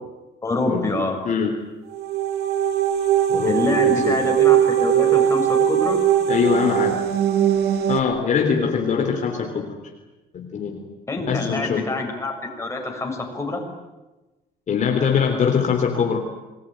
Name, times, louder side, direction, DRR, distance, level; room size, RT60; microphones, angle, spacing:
voice 1, 0.4-1.2 3.4-6.0 11.1-13.6, left 2 dB, 15° left, 2 dB, 6.9 m, -26 dB
voice 2, 1.2-1.6 3.3-4.3 6.3-7.0 7.9-9.7 10.3-10.9 11.3-11.9 14.7-16.2, left 6 dB, 45° left, 3 dB, 3.6 m, -22 dB
sound 1, 1.9-8.0, right 10 dB, 75° right, 2.3 m, -20 dB
27.5 x 21.0 x 9.3 m, 1.1 s
cardioid pair, 110°, 17 cm